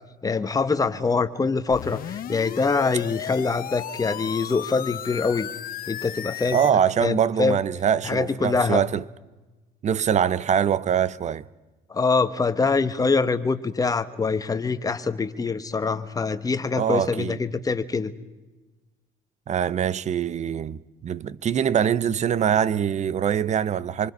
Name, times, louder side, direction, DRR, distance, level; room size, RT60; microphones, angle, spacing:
voice 1, 0.2-5.5 5.9-6.6 7.0-7.6 8.0-8.8 11.9-18.1, left 4 dB, 20° left, 1.3 m, -24 dB
sound 1, 1.7-6.7, left 11 dB, 60° left, 1.0 m, -35 dB
voice 2, 6.5-9.0 9.8-11.4 16.8-17.4 19.5-24.1, right 8 dB, 45° right, 0.8 m, -23 dB
26.5 x 25.0 x 5.5 m
cardioid pair, 110°, 17 cm